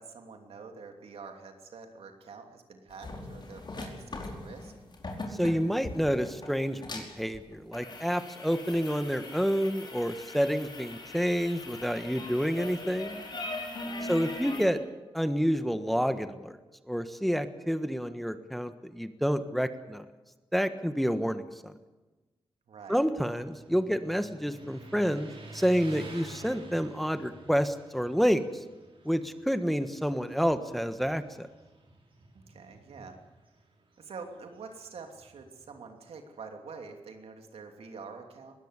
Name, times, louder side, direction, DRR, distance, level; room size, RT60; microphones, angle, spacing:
voice 1, 0.0-4.7 13.8-14.2 22.7-23.0 32.3-33.2 34.0-38.5, right 5 dB, 85° right, 4 dB, 2.9 m, -46 dB
sound 1, 2.9-14.7, left 2 dB, 50° left, 4.9 m, -41 dB
voice 2, 5.3-13.2 14.0-14.8 15.1-16.6 16.9-20.0 20.5-21.7 22.9-28.6 29.0-31.5, equal, ahead, 10 dB, 1.4 m, -29 dB
Motorcycle, 23.2-35.9, right 2 dB, 65° right, 5.6 m, -51 dB
21.0 x 16.5 x 8.3 m, 1.2 s
cardioid pair, 75°, 10 cm